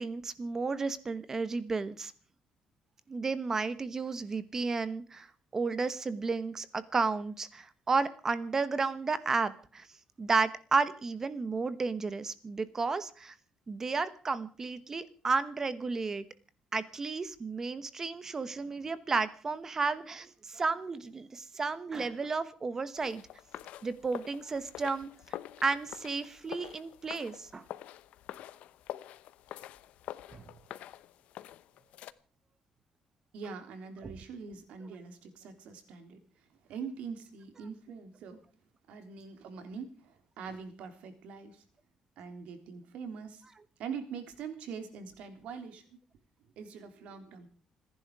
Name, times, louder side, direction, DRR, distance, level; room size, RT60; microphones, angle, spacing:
voice 1, 0.0-2.1 3.1-5.3 5.5-9.9 10.2-13.3 13.7-16.2 16.7-23.2 23.8-25.1 25.6-27.6 30.3-30.4 34.0-34.1, right 4 dB, 20° right, 14 dB, 1.1 m, -32 dB
sound 1, 23.0-32.1, left 13 dB, 80° left, 0.9 m, -46 dB
voice 2, 33.3-36.2 36.6-38.4 38.9-41.6 42.2-43.4 43.8-46.0 46.6-47.5, right 6 dB, 70° right, 8 dB, 3.5 m, -43 dB
27.5 x 11.0 x 4.8 m, 0.40 s
cardioid pair, 175°, 2 cm